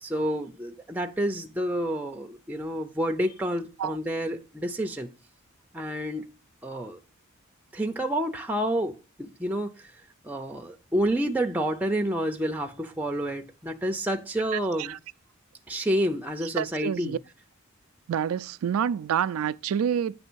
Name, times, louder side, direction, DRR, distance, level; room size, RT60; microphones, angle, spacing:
voice 1, 0.0-5.1 5.7-6.3 6.6-7.0 7.7-9.9 10.2-15.0 15.7-17.2, right 1 dB, 5° right, 0.5 m, -29 dB
voice 2, 16.6-17.2 18.1-20.2, right 8 dB, 80° right, 0.3 m, -27 dB
9.2 x 3.2 x 6.1 m
head